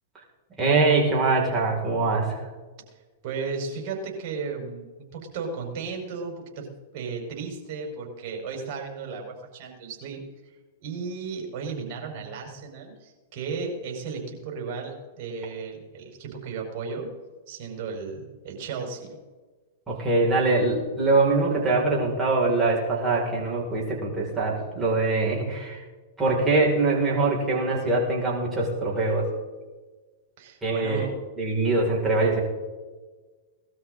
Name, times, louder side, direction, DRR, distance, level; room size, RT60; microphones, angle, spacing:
voice 1, 0.6-2.4 19.9-25.8 26.2-29.3 30.6-31.1 31.4-32.4, right 3 dB, 15° right, -4 dB, 5.7 m, -23 dB
voice 2, 3.2-4.8 5.1-6.7 6.9-17.1 17.5-19.2 30.4-31.1, right 5 dB, 50° right, 1 dB, 5.1 m, -35 dB
19.5 x 13.0 x 4.0 m, 1.3 s
hypercardioid pair, 105°, 0 cm